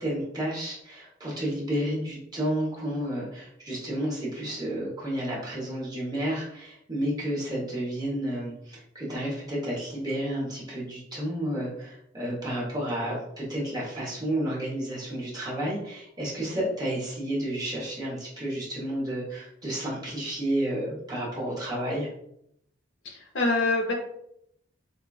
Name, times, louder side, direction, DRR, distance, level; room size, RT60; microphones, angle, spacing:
voice 1, 0.0-22.1, right 1 dB, 20° right, -5 dB, 1.1 m, -31 dB
voice 2, 23.0-23.9, left 2 dB, 90° left, 0 dB, 0.8 m, -25 dB
4.4 x 2.3 x 2.3 m, 0.73 s
head